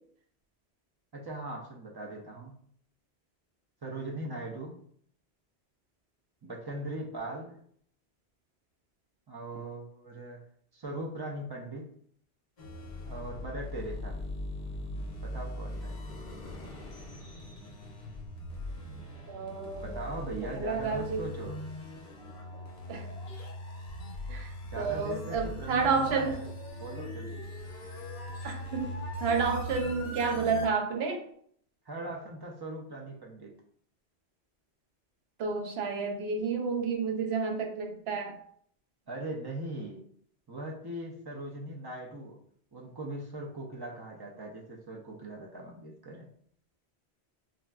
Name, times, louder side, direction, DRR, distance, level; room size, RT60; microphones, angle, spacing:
voice 1, 1.1-2.5 3.8-4.8 6.4-7.6 9.3-10.4 10.7-11.9 13.0-14.2 15.2-15.9 19.8-21.6 24.7-26.5 26.8-27.5 31.9-33.5 39.1-40.0 40.5-42.4 42.7-46.3, right 1 dB, 40° right, -1 dB, 0.3 m, -40 dB
sound 1, 12.6-30.7, equal, 50° left, 0.7 m, -40 dB
voice 2, 19.3-19.9 20.6-21.2 22.9-23.1 24.3-24.5 24.8-26.4 28.4-28.9 29.2-31.2 35.4-38.4, right 5 dB, 75° right, 4 dB, 0.9 m, -30 dB
3.8 x 2.3 x 2.2 m, 0.62 s
omnidirectional pair, 1.1 m